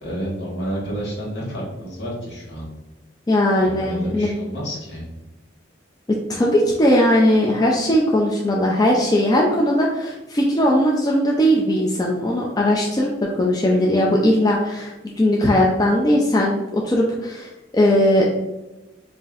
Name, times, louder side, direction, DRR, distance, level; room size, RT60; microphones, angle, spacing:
voice 1, 0.0-2.7 3.6-5.0, equal, 65° left, -5 dB, 1.5 m, -30 dB
voice 2, 3.3-4.3 6.1-18.3, left 1 dB, 20° left, -2 dB, 0.4 m, -19 dB
5.0 x 2.6 x 2.4 m, 1.1 s
head